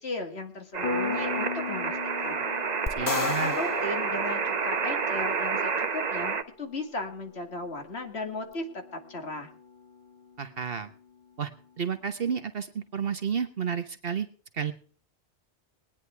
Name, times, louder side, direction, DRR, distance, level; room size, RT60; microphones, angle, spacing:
voice 1, 0.0-2.5 3.0-8.8 9.1-9.5, left 2 dB, 70° left, 5 dB, 2.5 m, -36 dB
sound 1, 0.7-6.4, right 5 dB, 40° right, 0.9 m, -29 dB
Piano, 0.8-11.2, left 4 dB, 50° left, 1.6 m, -40 dB
sound 2, 2.9-5.2, left 4 dB, 25° left, 0.4 m, -34 dB
voice 2, 2.9-3.5 10.4-10.9 11.4-11.5 11.8-14.3 14.5-14.7, right 7 dB, 60° right, 10 dB, 1.2 m, -31 dB
20.5 x 10.0 x 4.5 m, 0.42 s
omnidirectional pair, 1.1 m